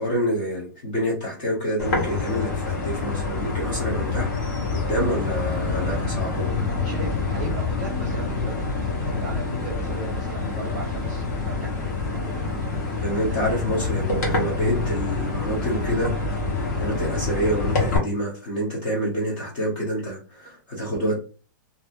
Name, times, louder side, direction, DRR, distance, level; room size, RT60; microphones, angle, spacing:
voice 1, 0.0-6.6 13.0-16.4 16.8-21.2, equal, 30° left, -3 dB, 0.8 m, -27 dB
sound 1, 1.8-18.0, left 3 dB, 55° left, 1.1 m, -26 dB
voice 2, 6.7-13.0 13.3-13.6, right 3 dB, 20° right, -2 dB, 0.8 m, -37 dB
2.7 x 2.6 x 2.5 m, 0.35 s
hypercardioid pair, 180°, 11 cm